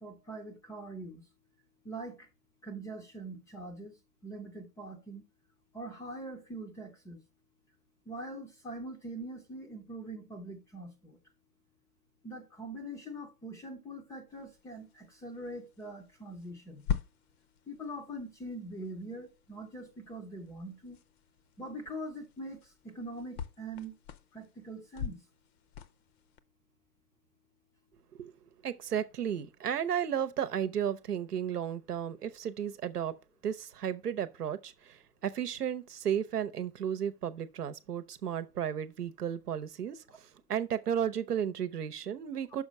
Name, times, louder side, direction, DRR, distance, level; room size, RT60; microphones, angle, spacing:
voice 1, 0.0-1.2 1.8-2.3 2.6-3.9 4.2-5.2 5.7-7.2 8.1-11.2 12.2-16.8 17.7-21.0 21.6-23.9 24.3-25.2, right 1 dB, 5° left, 0.5 m, -43 dB
sound 1, 14.3-26.4, left 8 dB, 45° left, 0.7 m, -44 dB
voice 2, 28.6-33.1 33.4-42.6, right 9 dB, 85° right, 0.9 m, -34 dB
6.3 x 4.8 x 5.3 m
hypercardioid pair, 125°, 45 cm